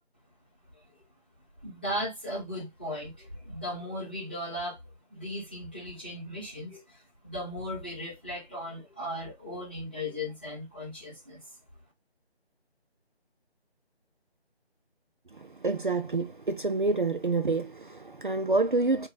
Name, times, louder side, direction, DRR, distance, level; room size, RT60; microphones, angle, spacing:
voice 1, 1.6-4.8 5.1-11.4, left 1 dB, 10° left, 1.2 m, -37 dB
voice 2, 15.3-19.1, right 3 dB, 50° right, 0.6 m, -28 dB
5.0 x 2.3 x 4.0 m
figure-of-eight pair, 170°, 33 cm